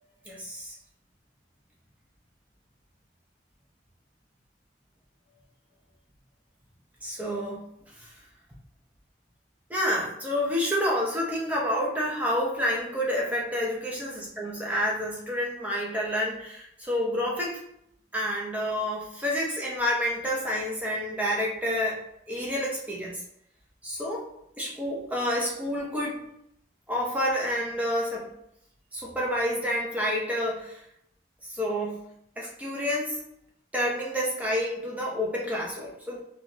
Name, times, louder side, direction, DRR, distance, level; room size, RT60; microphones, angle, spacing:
voice 1, 0.3-0.8 7.0-7.7 8.0-8.1 9.7-17.6 18.1-22.0 22.3-23.2 23.8-24.3 24.6-26.2 26.9-28.3 28.9-30.8 31.4-32.0 32.4-33.2 33.7-36.2, equal, 10° right, -4 dB, 0.6 m, -29 dB
4.1 x 2.4 x 3.0 m, 0.75 s
head